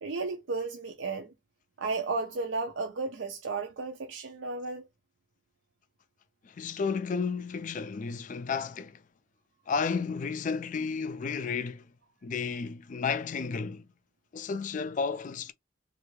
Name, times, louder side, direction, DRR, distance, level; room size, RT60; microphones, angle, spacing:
voice 1, 0.0-1.3 1.8-4.8, right 3 dB, 75° right, 0.5 m, -33 dB
voice 2, 6.6-9.0 9.7-11.8 12.2-13.8 14.3-15.5, left 5 dB, 40° left, 0.3 m, -32 dB
3.3 x 2.4 x 3.1 m
head